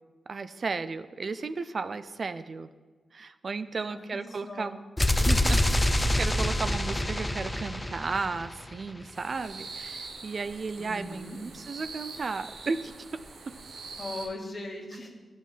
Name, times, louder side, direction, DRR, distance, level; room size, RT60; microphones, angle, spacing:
voice 1, 0.3-2.7 3.1-4.8 5.2-12.9, right 4 dB, 55° right, 11 dB, 0.3 m, -34 dB
voice 2, 3.9-4.7 10.8-11.4 14.0-15.1, left 2 dB, 50° left, 0 dB, 1.6 m, -39 dB
sound 1, 5.0-8.8, left 1 dB, 20° left, 0.6 m, -26 dB
sound 2, 9.1-14.3, right 4 dB, 80° right, 0.8 m, -43 dB
11.0 x 5.3 x 3.3 m, 1.3 s
cardioid pair, 50°, 0 cm